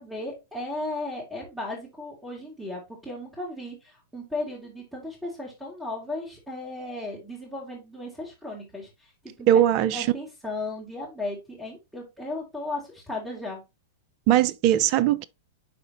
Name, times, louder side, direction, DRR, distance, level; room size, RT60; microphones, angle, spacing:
voice 1, 0.0-9.6 9.9-13.6, left 2 dB, 5° right, 2.7 m, -35 dB
voice 2, 9.5-10.1 14.3-15.2, right 11 dB, 45° right, 0.5 m, -20 dB
10.5 x 3.8 x 2.8 m
hypercardioid pair, 105°, 0 cm